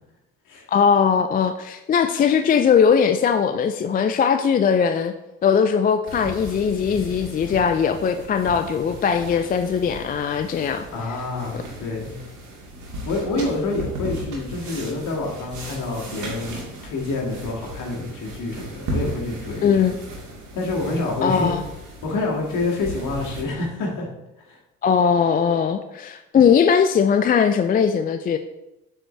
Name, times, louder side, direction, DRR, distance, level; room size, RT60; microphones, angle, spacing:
voice 1, 0.7-5.1 5.4-10.9 19.6-20.0 21.2-21.6 24.8-28.4, left 7 dB, 25° left, 9 dB, 0.4 m, -19 dB
sound 1, 6.1-23.4, right 1 dB, 50° right, 2.1 m, -36 dB
voice 2, 10.9-12.2 13.0-19.8 20.5-21.5 22.0-24.1 24.5-24.6, left 2 dB, 55° left, -1 dB, 2.0 m, -27 dB
7.4 x 4.8 x 3.2 m, 0.95 s
hypercardioid pair, 55°, 37 cm